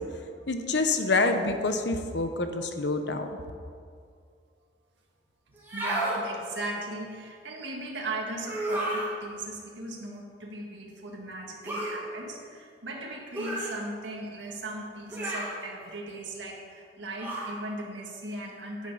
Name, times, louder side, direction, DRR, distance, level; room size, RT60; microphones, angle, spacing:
voice 1, 0.5-3.3, left 3 dB, 70° left, 6 dB, 1.0 m, -27 dB
Aaron Helm, 5.6-6.2 8.4-9.1 11.6-12.0 13.3-13.7 15.1-15.6 17.2-17.5, right 1 dB, 10° right, 2.5 m, -31 dB
voice 2, 5.7-18.9, right 2 dB, 85° right, -1 dB, 1.8 m, -38 dB
10.5 x 9.8 x 5.5 m, 2.2 s
head